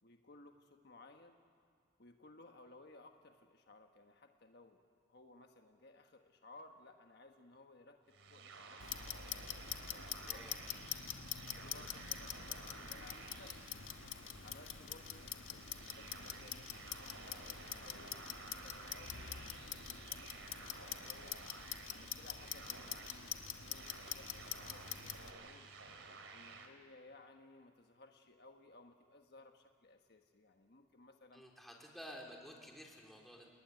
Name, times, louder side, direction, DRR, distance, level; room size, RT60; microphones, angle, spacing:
voice 1, 0.0-1.4 2.0-4.8 5.1-9.2 9.8-10.5 11.5-13.6 14.4-21.4 21.9-25.7 26.3-31.4, left 2 dB, 55° left, 4 dB, 1.4 m, -60 dB
sound 1, 8.1-26.7, right 4 dB, 85° right, 2.8 m, -54 dB
Clock, 8.8-25.3, left 9 dB, 85° left, 1.3 m, -46 dB
voice 2, 31.3-33.5, equal, ahead, 0 dB, 3.7 m, -52 dB
29.5 x 19.5 x 9.6 m, 2.3 s
head